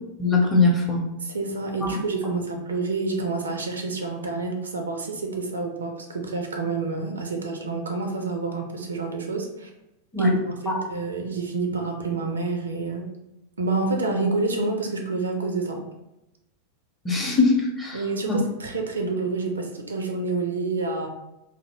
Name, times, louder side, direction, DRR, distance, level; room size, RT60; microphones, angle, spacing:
voice 1, 0.2-1.0 10.1-10.3 10.7-10.8 17.0-18.4, left 3 dB, 10° left, -2 dB, 0.6 m, -21 dB
voice 2, 1.2-9.7 10.2-13.1 13.6-15.8 17.9-21.1, right 3 dB, 70° right, 3 dB, 0.4 m, -28 dB
2.5 x 2.0 x 2.7 m, 0.92 s
figure-of-eight pair, 90°, 0 cm